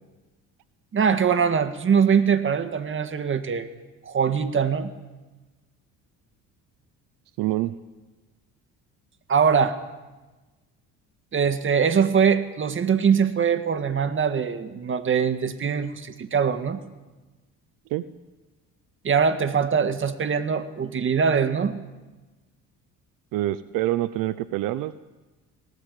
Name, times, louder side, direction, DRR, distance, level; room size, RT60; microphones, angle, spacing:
voice 1, 0.9-3.7 4.0-4.9 9.3-9.8 11.3-16.8 19.0-21.8, right 6 dB, 35° right, 9 dB, 1.8 m, -22 dB
voice 2, 7.4-7.7 17.9-18.0 23.3-25.0, right 15 dB, 80° right, 15 dB, 0.8 m, -26 dB
19.0 x 18.5 x 8.4 m, 1.2 s
cardioid pair, 100°, 33 cm